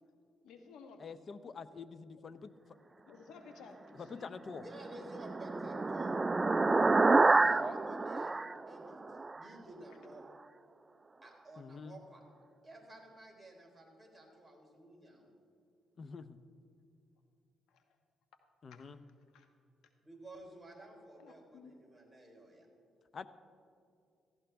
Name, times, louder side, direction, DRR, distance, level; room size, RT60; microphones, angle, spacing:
voice 1, 0.4-1.0 3.0-4.4 17.7-17.8 18.7-18.8 19.3-19.5 21.2-21.7, left 5 dB, 80° left, 6 dB, 1.3 m, -55 dB
voice 2, 1.0-2.5 3.9-4.6 6.0-6.2 11.6-12.0 16.0-16.4 18.6-19.0 23.1-23.3, left 5 dB, 45° left, 13 dB, 0.6 m, -46 dB
voice 3, 4.6-6.2 7.2-8.4 8.7-10.3 11.2-12.2 12.6-15.3 20.0-22.7, right 1 dB, 5° right, -2 dB, 3.8 m, -53 dB
sound 1, 4.6-9.4, right 3 dB, 20° right, 0.3 m, -28 dB
17.0 x 14.5 x 3.5 m, 2.4 s
cardioid pair, 90°, 0 cm